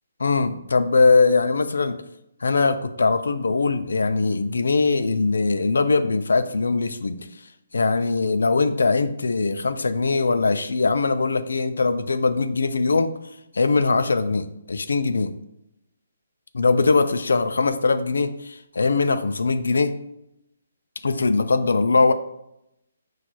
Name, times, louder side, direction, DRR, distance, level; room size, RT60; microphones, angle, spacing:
voice 1, 0.2-2.0 2.4-7.3 7.7-13.1 13.5-15.3 16.5-20.0 21.0-22.1, left 4 dB, 80° left, 10 dB, 0.3 m, -21 dB
4.5 x 2.3 x 4.1 m, 0.82 s
hypercardioid pair, 150°, 0 cm